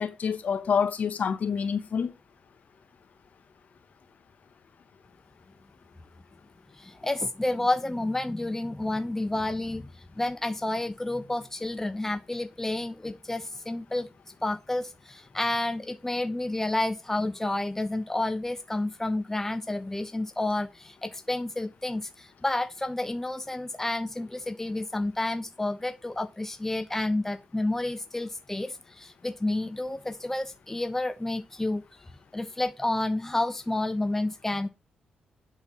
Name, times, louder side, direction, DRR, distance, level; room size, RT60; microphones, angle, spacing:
voice 1, 0.0-2.1, left 6 dB, 60° left, 1.1 m, -27 dB
voice 2, 6.7-14.1 14.4-31.8 32.3-34.7, left 2 dB, 10° left, 0.8 m, -30 dB
10.5 x 4.5 x 5.5 m
cardioid pair, 70°, 3 cm